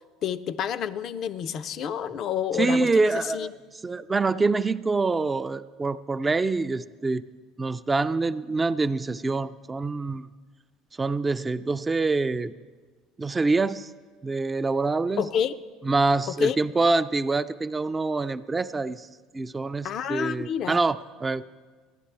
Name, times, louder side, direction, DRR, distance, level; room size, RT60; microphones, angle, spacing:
voice 1, 0.2-3.5 15.2-15.5 16.4-16.6 19.8-20.8, left 8 dB, 55° left, 12 dB, 0.4 m, -29 dB
voice 2, 2.6-3.5 3.8-7.2 7.6-10.3 11.0-12.5 13.2-13.9 14.2-15.3 15.8-19.1 19.3-21.4, right 3 dB, 20° right, 12 dB, 0.3 m, -25 dB
14.0 x 11.0 x 3.3 m, 1.4 s
hypercardioid pair, 70°, 0 cm